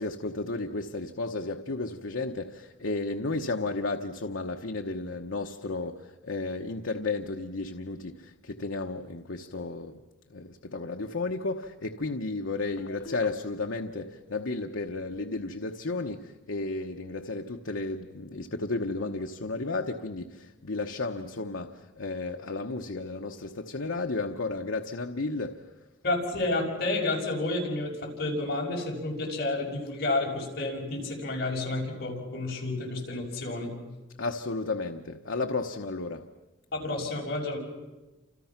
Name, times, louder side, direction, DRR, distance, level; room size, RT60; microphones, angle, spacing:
voice 1, 0.0-10.0 10.3-25.7 34.2-36.3, left 3 dB, 80° left, 1.1 m, -33 dB
voice 2, 26.0-33.8 36.7-37.6, left 2 dB, 55° left, 6.1 m, -30 dB
29.5 x 27.5 x 5.9 m
head